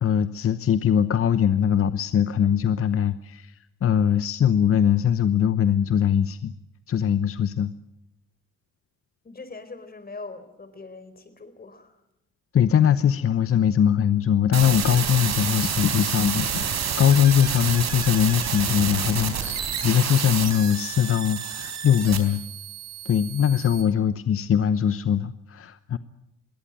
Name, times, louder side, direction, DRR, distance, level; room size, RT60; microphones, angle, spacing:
voice 1, 0.0-6.5 6.9-7.7 12.5-22.4 23.0-26.0, left 9 dB, 45° left, 13 dB, 0.9 m, -21 dB
voice 2, 9.2-12.0, left 3 dB, 30° left, 11 dB, 4.2 m, -41 dB
sound 1, 14.5-23.8, right 7 dB, 60° right, 4.1 m, -29 dB
22.0 x 17.5 x 9.2 m, 0.83 s
cardioid pair, 90°, 30 cm